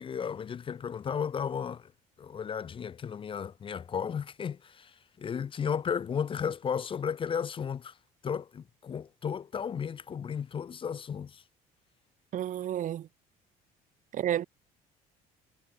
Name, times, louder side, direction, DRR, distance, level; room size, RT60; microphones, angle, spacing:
voice 1, 0.0-1.9 2.2-7.9 8.2-11.4, left 7 dB, 30° left, 0.4 m, -34 dB
voice 2, 12.3-13.1 14.1-14.4, right 11 dB, 45° right, 0.5 m, -31 dB
supercardioid pair, 75°, 19 cm